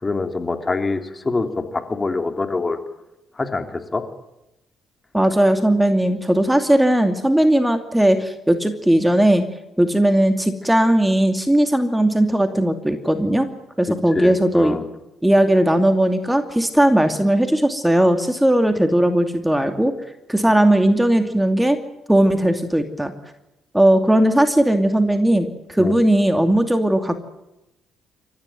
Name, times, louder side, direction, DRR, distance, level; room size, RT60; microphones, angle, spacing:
voice 1, 0.0-2.8 3.4-4.0 14.1-14.8 25.8-26.0, left 3 dB, 30° left, 5 dB, 3.4 m, -25 dB
voice 2, 5.1-9.4 9.8-13.5 13.8-14.8 15.2-19.9 20.3-21.8 22.1-23.1 23.7-27.2, right 1 dB, 5° right, 7 dB, 2.6 m, -17 dB
28.0 x 14.5 x 9.3 m, 0.93 s
hypercardioid pair, 50°, 0 cm